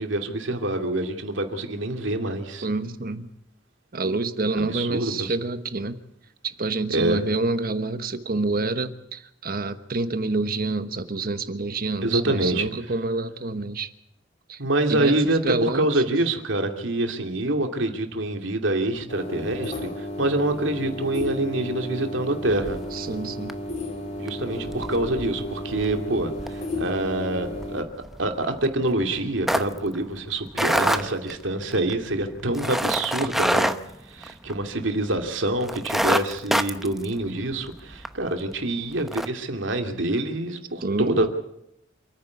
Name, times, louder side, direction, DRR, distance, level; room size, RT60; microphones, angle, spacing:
voice 1, 0.0-2.7 4.5-5.3 6.9-7.2 12.0-12.7 14.6-22.8 24.2-27.9 28.2-33.7 34.1-41.3, right 2 dB, 75° right, 5 dB, 2.6 m, -26 dB
voice 2, 2.6-3.3 3.9-6.0 6.4-13.9 14.5-14.6 14.9-15.2 15.4-15.9 22.9-23.6 40.8-41.3, right 3 dB, 50° right, 10 dB, 1.2 m, -27 dB
sound 1, 19.1-27.8, left 1 dB, 35° left, 3.2 m, -34 dB
sound 2, 22.5-23.1 23.5-23.8 24.1-34.8 35.2-35.3 35.6-38.1 38.5-38.6 39.0-39.3, equal, ahead, 0.9 m, -27 dB
28.0 x 9.8 x 9.6 m, 0.81 s
head